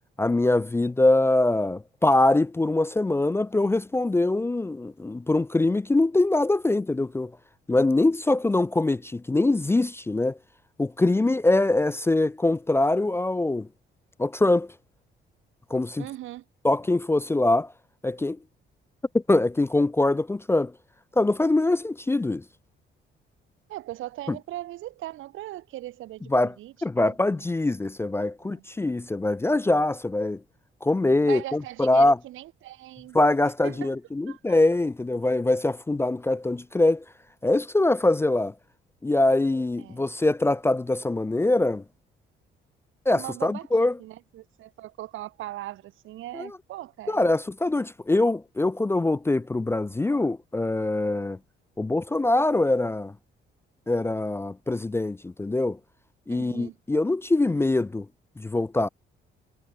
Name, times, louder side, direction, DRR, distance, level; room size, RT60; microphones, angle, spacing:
voice 1, 0.2-7.3 7.7-10.4 10.8-13.7 14.2-14.7 15.7-16.0 16.6-17.7 18.0-18.4 19.1-20.7 21.2-22.4 24.3-24.4 26.3-26.5 26.8-30.4 30.8-32.2 33.1-37.0 37.4-38.5 39.0-41.8 43.1-43.9 46.3-46.6 47.1-51.4 51.8-53.1 53.9-55.8 56.3-58.1 58.4-58.9, left 2 dB, 10° left, 0.4 m, -23 dB
voice 2, 16.0-16.4 23.7-26.7 27.0-27.5 28.4-28.6 31.2-33.2 33.6-33.9 34.3-34.6 39.8-40.1 43.1-47.2 56.3-56.8, right 15 dB, 80° right, 1.1 m, -39 dB
cardioid pair, 90°, 20 cm